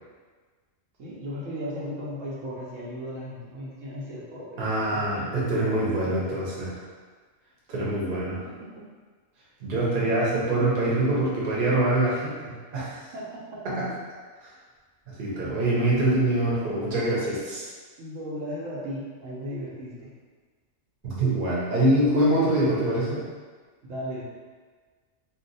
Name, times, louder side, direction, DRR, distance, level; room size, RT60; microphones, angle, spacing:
voice 1, 1.0-5.1 5.3-6.4 13.1-13.6 18.0-20.1 22.2-22.7 23.8-24.2, equal, 80° right, -6 dB, 1.0 m, -37 dB
voice 2, 4.6-6.7 7.7-8.4 9.6-13.0 13.6-13.9 14.4-14.5 15.1-17.7 21.0-23.2, right 1 dB, 50° right, -6 dB, 0.9 m, -24 dB
2.6 x 2.1 x 3.9 m, 1.5 s
omnidirectional pair, 1.3 m